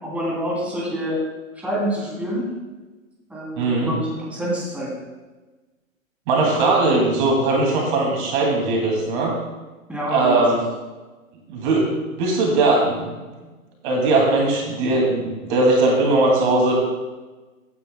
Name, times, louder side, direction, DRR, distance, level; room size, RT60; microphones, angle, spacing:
voice 1, 0.0-1.2 1.5-2.5 3.3-4.9 9.9-10.4, equal, 5° right, -5 dB, 2.9 m, -26 dB
voice 2, 3.6-3.9 6.3-9.3 10.1-10.6 11.5-11.9 12.2-13.0 13.8-16.7, right 2 dB, 35° right, -1 dB, 2.4 m, -19 dB
16.0 x 9.6 x 2.2 m, 1.2 s
hypercardioid pair, 130°, 41 cm